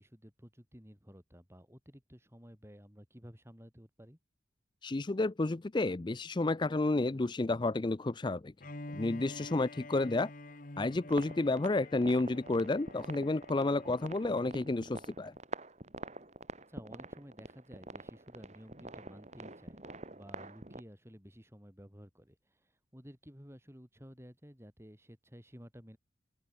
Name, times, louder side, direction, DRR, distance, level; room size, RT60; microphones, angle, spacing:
voice 1, 0.0-4.2 16.7-26.0, equal, 15° right, 6.2 m, -54 dB
voice 2, 4.8-8.5 8.9-10.3 10.8-15.3, left 2 dB, 25° left, 0.4 m, -31 dB
Bowed string instrument, 8.6-14.6, left 2 dB, 45° left, 1.8 m, -48 dB
sound 1, 11.0-20.8, right 2 dB, 35° right, 2.6 m, -47 dB
open air
head